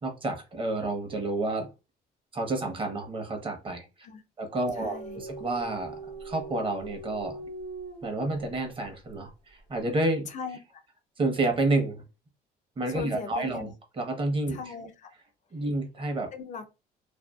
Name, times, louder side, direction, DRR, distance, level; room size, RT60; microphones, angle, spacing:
voice 1, 0.0-1.7 2.3-3.9 4.4-7.5 8.0-10.3 11.2-12.0 12.8-13.7 14.0-14.7 15.5-16.3, right 2 dB, 30° right, 0.8 m, -30 dB
voice 2, 4.7-5.2 10.3-10.8 12.9-13.7 14.5-15.1 16.3-16.8, left 6 dB, 45° left, 0.4 m, -39 dB
sound 1, 4.7-8.7, right 3 dB, 80° right, 1.0 m, -41 dB
2.6 x 2.3 x 2.2 m
cardioid pair, 110°, 17 cm